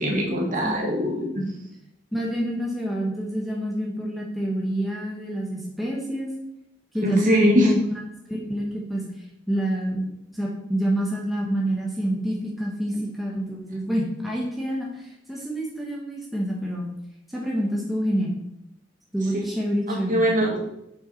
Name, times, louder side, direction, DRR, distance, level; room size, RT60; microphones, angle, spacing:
voice 1, 0.0-1.4 7.0-7.7 19.3-19.4 19.9-20.6, equal, 45° right, -1 dB, 1.9 m, -22 dB
voice 2, 2.1-6.3 6.9-8.0 8.3-9.0 9.5-10.0 10.3-16.9 17.3-18.3 19.1-20.3, equal, ahead, -3 dB, 1.1 m, -27 dB
6.6 x 5.6 x 4.4 m, 0.84 s
head